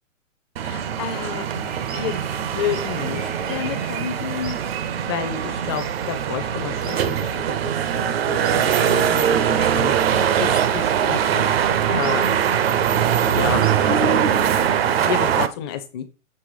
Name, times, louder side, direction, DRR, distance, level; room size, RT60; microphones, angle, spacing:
voice 1, 0.6-7.4 8.0-12.3 13.3-13.6 13.9-14.2 14.7-16.0, left 8 dB, 20° left, 8 dB, 0.5 m, -31 dB
sound 1, 0.6-15.5, right 9 dB, 50° right, 0.6 m, -21 dB
sound 2, 1.1-13.9, right 3 dB, 90° right, 2.8 m, -42 dB
6.9 x 3.4 x 4.8 m, 0.32 s
hypercardioid pair, 145°, 39 cm